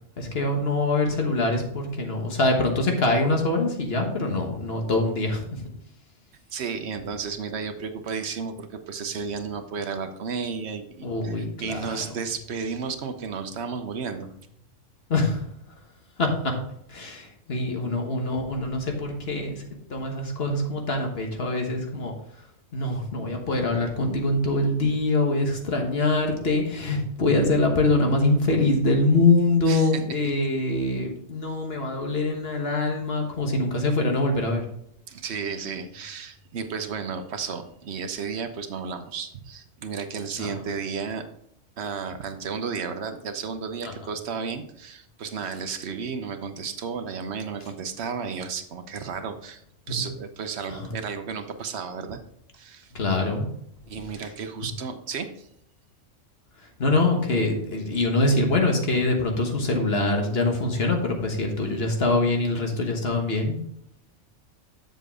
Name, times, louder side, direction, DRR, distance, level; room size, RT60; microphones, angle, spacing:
voice 1, 0.2-5.6 11.0-12.0 15.1-15.5 16.2-16.6 16.9-19.6 19.9-22.1 22.7-34.6 40.4-40.5 43.8-43.9 49.9-50.0 50.7-50.9 52.9-53.5 56.8-63.6, left 2 dB, 55° left, 2 dB, 1.5 m, -24 dB
voice 2, 6.5-14.3 29.7-30.3 35.1-41.2 41.8-49.6 49.9-52.2 52.6-52.9 53.9-55.5, right 5 dB, 65° right, 8 dB, 1.1 m, -33 dB
7.4 x 6.6 x 3.6 m, 0.74 s
omnidirectional pair, 1.3 m